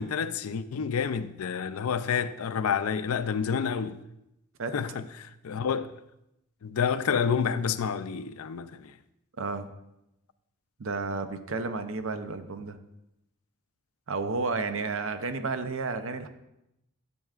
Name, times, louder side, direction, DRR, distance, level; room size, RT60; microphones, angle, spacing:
voice 1, 0.0-4.0 4.7-5.9 6.6-8.9, left 6 dB, 80° left, 0.4 m, -29 dB
voice 2, 4.6-5.0 9.4-9.7 10.8-12.8 14.1-16.3, right 4 dB, 65° right, 0.7 m, -32 dB
12.0 x 7.7 x 2.4 m
head